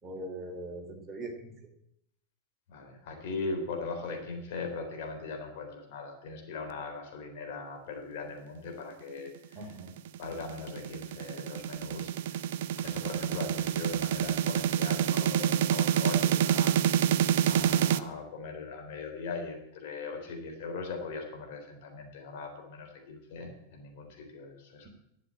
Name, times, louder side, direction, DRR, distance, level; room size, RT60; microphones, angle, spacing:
voice 1, 0.0-1.5 9.5-9.9, right 1 dB, 20° right, 2 dB, 3.0 m, -41 dB
voice 2, 2.7-9.6 10.2-12.1 12.8-16.8 17.4-24.9, left 4 dB, 50° left, 3 dB, 3.7 m, -39 dB
sound 1, 9.9-18.0, right 10 dB, 55° right, 0.6 m, -27 dB
12.0 x 7.9 x 8.7 m, 0.77 s
figure-of-eight pair, 90°, 0 cm